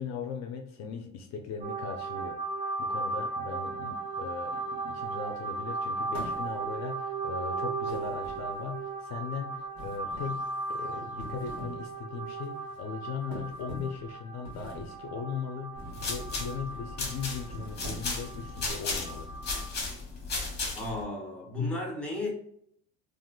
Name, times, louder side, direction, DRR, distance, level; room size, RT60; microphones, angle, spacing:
voice 1, 0.0-2.4 2.8-10.4 10.7-19.3, left 6 dB, 55° left, 3 dB, 0.5 m, -38 dB
sound 1, 1.6-19.7, right 3 dB, 25° right, 0.4 m, -36 dB
sound 2, 6.1-6.8 7.9-8.8 9.7-10.4 11.0-11.9 12.2-12.5 13.3-14.0 14.4-15.0 15.8-16.2 16.6-16.9 17.4-18.3, equal, 60° right, 1.2 m, -44 dB
sound 3, 15.8-21.0, left 3 dB, 30° left, 1.0 m, -35 dB
voice 2, 20.7-22.4, left 2 dB, 5° left, -1 dB, 0.9 m, -33 dB
3.5 x 2.5 x 2.3 m, 0.69 s
cardioid pair, 140°, 32 cm